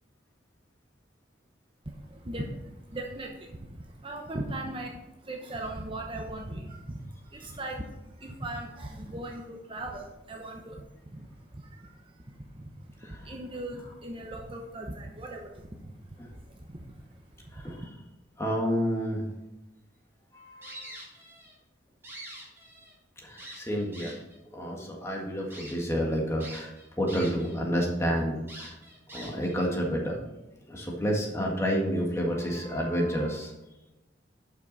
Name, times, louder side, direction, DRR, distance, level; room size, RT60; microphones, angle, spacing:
voice 1, 1.9-12.7 13.0-17.0 17.4-17.7, right 1 dB, 30° right, 1 dB, 0.8 m, -39 dB
voice 2, 13.0-13.3 16.2-16.3 17.5-17.8 18.4-19.2 20.3-20.9 23.2-24.1 24.5-28.8 29.1-30.2 30.7-33.5, equal, 15° left, -1 dB, 1.6 m, -30 dB
sound 1, 20.6-21.6 21.9-22.9 23.4-24.4 24.9-25.0 25.5-25.7 26.4-27.6 27.9-28.0 28.5-29.6, right 1 dB, 15° right, 2.4 m, -45 dB
11.5 x 6.0 x 4.0 m, 0.98 s
head